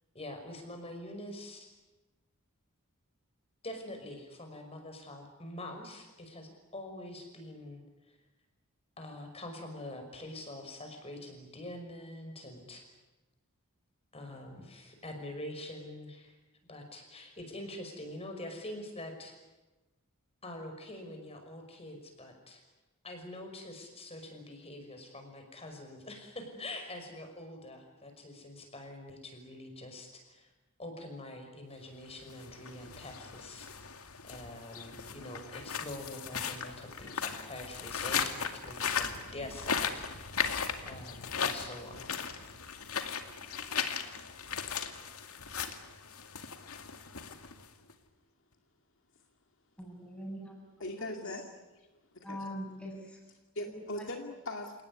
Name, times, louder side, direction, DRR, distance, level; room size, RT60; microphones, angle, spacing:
voice 1, 0.1-1.7 3.6-7.8 9.0-12.8 14.1-16.4 16.7-19.3 20.4-22.6 23.0-30.5 30.8-33.7 34.2-40.6 40.9-42.1, left 1 dB, 30° left, 5 dB, 5.7 m, -45 dB
sound 1, 32.2-47.9, left 6 dB, 85° left, 2.3 m, -37 dB
voice 2, 49.8-50.6 50.9-51.4 52.2-53.2 53.6-54.0, equal, 5° left, 0 dB, 7.3 m, -43 dB
voice 3, 50.8-51.9 52.1-52.4 53.6-54.7, left 1 dB, 60° left, 3 dB, 2.3 m, -40 dB
29.0 x 18.5 x 9.8 m, 1.1 s
head